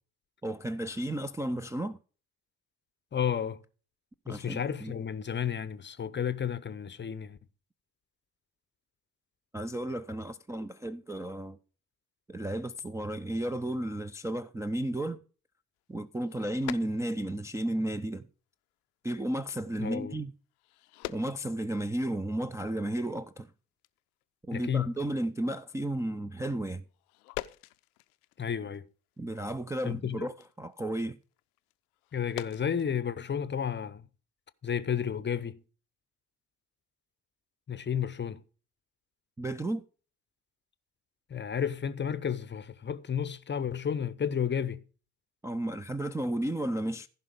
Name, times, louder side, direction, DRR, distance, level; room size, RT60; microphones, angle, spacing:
voice 1, 0.4-2.0 4.3-5.0 9.5-11.6 12.3-15.2 15.9-18.3 19.0-20.3 21.1-23.5 24.5-26.8 29.2-31.2 39.4-39.8 45.4-47.1, right 1 dB, 5° right, 0.5 m, -33 dB
voice 2, 3.1-3.6 4.3-7.4 19.8-20.1 24.5-24.9 28.4-28.9 29.8-30.3 32.1-34.1 34.6-35.6 37.7-38.4 41.3-44.8, left 8 dB, 25° left, 0.8 m, -32 dB
sound 1, 15.8-17.4 17.8-18.1 18.6-18.9 19.1-19.2 19.5-19.6 20.5-22.0 22.4-22.5 22.7-23.1 23.4-23.5 23.8-24.2 24.5-24.8 25.1-25.2 26.8-28.8 29.0-32.9, left 18 dB, 70° left, 0.6 m, -45 dB
15.0 x 5.6 x 5.2 m
figure-of-eight pair, 50°, 47 cm